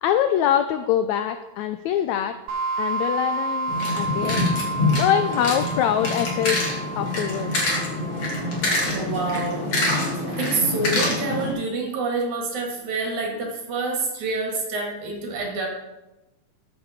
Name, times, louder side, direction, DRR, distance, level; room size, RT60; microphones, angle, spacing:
voice 1, 0.0-2.3 2.8-4.5 5.0-6.6 7.0-7.6, left 10 dB, 85° left, 9 dB, 1.6 m, -24 dB
sound 1, 2.5-9.0, right 2 dB, 80° right, 2.5 m, -30 dB
sound 2, 3.7-11.5, left 2 dB, 45° left, 2.8 m, -25 dB
voice 2, 8.6-10.0 10.4-15.7, right 3 dB, 65° right, 0 dB, 3.4 m, -27 dB
13.5 x 6.8 x 4.3 m, 1.0 s
omnidirectional pair, 3.7 m